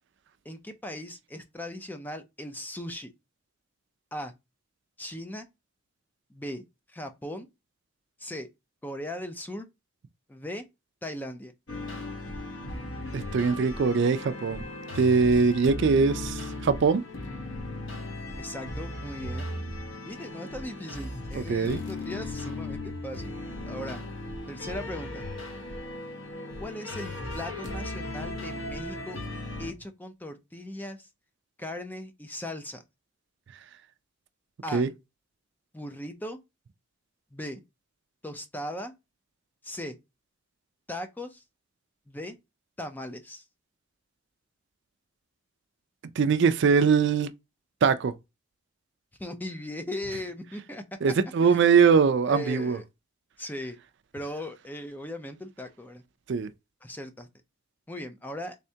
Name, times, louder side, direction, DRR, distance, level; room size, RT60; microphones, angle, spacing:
voice 1, 0.4-3.1 4.1-4.3 5.0-5.5 6.3-7.5 8.2-8.5 8.8-9.7 10.3-10.6 11.0-11.5 18.3-19.5 20.1-23.4 23.6-24.0 24.5-25.2 26.6-29.2 29.6-31.1 31.6-32.8 34.6-34.9 35.7-36.4 37.3-37.6 38.2-38.9 39.6-40.0 40.9-41.4 42.1-42.4 42.8-43.4 49.2-50.8 51.4-51.7 52.3-52.8 53.4-53.8 54.1-56.0 56.8-57.3 57.9-58.6, left 1 dB, 10° left, 0.5 m, -38 dB
sound 1, 11.7-29.7, left 1 dB, 65° left, 0.9 m, -37 dB
voice 2, 13.1-14.6 15.0-17.0 21.3-21.8 34.7-34.9 46.2-47.3 47.8-48.1 51.0-52.8 56.3-56.5, right 5 dB, 60° right, 0.4 m, -22 dB
3.5 x 3.3 x 2.7 m
head